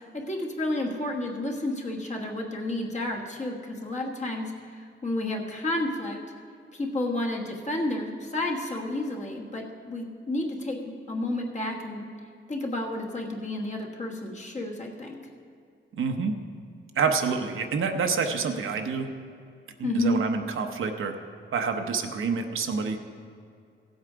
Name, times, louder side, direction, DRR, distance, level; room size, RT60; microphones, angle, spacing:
voice 1, 0.1-4.5 5.0-6.2 6.7-12.1 12.5-15.2 19.8-20.2, left 1 dB, 35° left, 0 dB, 1.3 m, -31 dB
voice 2, 15.9-16.3 17.0-19.1 19.8-21.1 21.5-23.0, right 5 dB, 75° right, 5 dB, 0.9 m, -27 dB
15.5 x 8.1 x 5.0 m, 2.4 s
wide cardioid pair, 155°, 21 cm